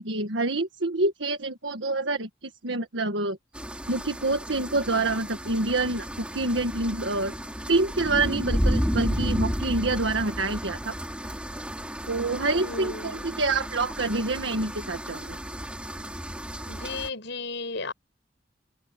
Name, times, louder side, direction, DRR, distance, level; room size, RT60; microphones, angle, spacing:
voice 1, 0.0-3.4 3.9-7.3 7.7-10.9 12.1-15.4, right 2 dB, 80° right, 1.7 m, -27 dB
sound 1, 3.5-17.1, equal, 5° right, 4.9 m, -32 dB
voice 2, 12.4-13.2 16.7-17.9, left 3 dB, 70° left, 6.7 m, -35 dB
head